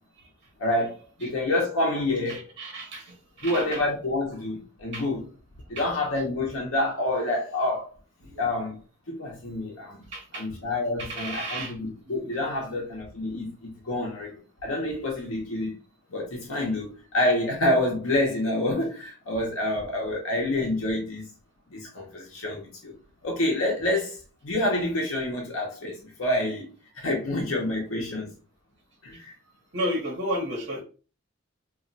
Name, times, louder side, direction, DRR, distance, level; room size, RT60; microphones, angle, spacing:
voice 1, 0.6-2.4 3.4-5.3 5.7-7.9 8.4-8.8 9.1-10.1 10.3-15.7 16.1-21.3 21.7-22.9 23.2-28.3 29.0-29.3, left 1 dB, 70° left, 0.7 m, -28 dB
voice 2, 2.3-3.6 4.9-5.0 5.8-5.9 8.3-8.4 10.1-10.5 11.0-11.8 12.2-12.3 29.7-30.8, equal, 55° right, 1.0 m, -32 dB
2.4 x 2.2 x 3.8 m
head